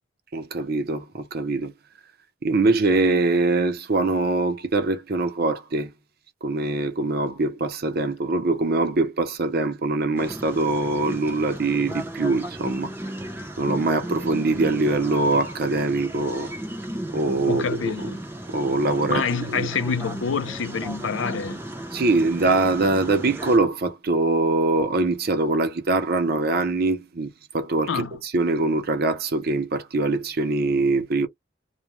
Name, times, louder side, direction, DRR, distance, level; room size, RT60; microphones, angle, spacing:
voice 1, 0.3-1.7 2.4-5.9 6.4-12.9 13.6-16.5 17.1-18.1 18.5-19.7 21.9-31.3, right 3 dB, 55° right, 0.7 m, -23 dB
sound 1, 10.2-23.6, right 1 dB, 10° right, 0.6 m, -35 dB
voice 2, 17.5-18.2 19.1-21.6 27.9-28.1, left 6 dB, 85° left, 0.5 m, -27 dB
2.3 x 2.1 x 2.9 m
head